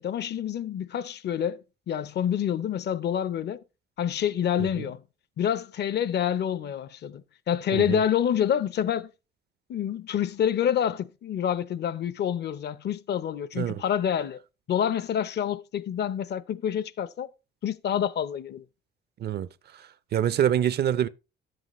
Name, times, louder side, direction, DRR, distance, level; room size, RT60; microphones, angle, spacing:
voice 1, 0.0-1.6 1.9-3.6 4.0-5.0 5.4-9.1 9.7-14.4 14.7-17.3 17.6-18.6, left 9 dB, 55° left, 0.7 m, -27 dB
voice 2, 7.7-8.0 13.5-13.8 19.2-19.5 20.1-21.1, right 10 dB, 55° right, 0.5 m, -25 dB
10.5 x 7.8 x 3.0 m
cardioid pair, 90°, 20 cm